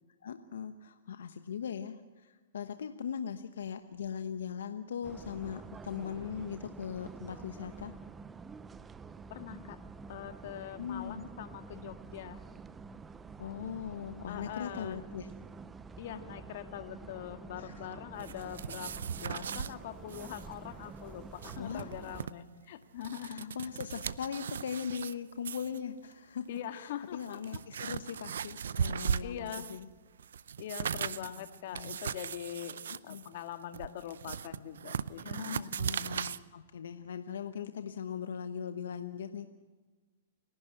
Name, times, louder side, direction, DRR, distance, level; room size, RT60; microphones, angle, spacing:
voice 1, 0.2-7.9 10.8-11.2 13.4-15.3 17.6-17.7 21.6-21.9 23.2-26.5 26.7-29.9 31.0-31.3 31.7-32.0 32.9-33.2 35.8-39.5, left 7 dB, 75° left, 8 dB, 1.1 m, -40 dB
sound 1, 5.0-22.3, right 4 dB, 15° right, 0.8 m, -48 dB
voice 2, 9.3-9.8 10.1-12.4 14.3-15.0 16.0-23.6 26.5-27.6 29.2-29.8 30.6-35.8, left 10 dB, 60° left, 8 dB, 1.8 m, -43 dB
sound 2, 18.2-19.7 20.1-20.5 20.7-20.8 21.2-22.3 22.8-25.1 25.4-25.8 26.6-26.7 27.1-29.8 30.2-36.4, right 7 dB, 80° right, 0.6 m, -38 dB
30.0 x 11.5 x 8.0 m, 1.3 s
hypercardioid pair, 125°, 0 cm